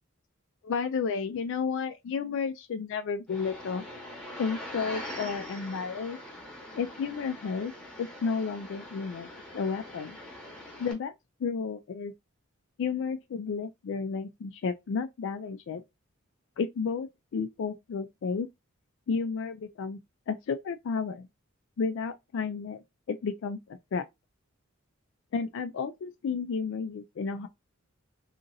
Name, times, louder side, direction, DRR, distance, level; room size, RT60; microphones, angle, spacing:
voice 1, 0.6-3.8 4.4-6.2 6.8-7.7 8.0-9.3 9.5-10.2 10.8-11.1 11.4-12.1 12.8-15.8 16.6-18.5 19.1-20.0 20.3-21.3 21.8-22.8 23.1-24.1 25.3-27.5, left 5 dB, 65° left, 0.3 m, -32 dB
sound 1, 3.3-10.9, left 1 dB, 5° left, 0.9 m, -43 dB
2.8 x 2.6 x 2.5 m
head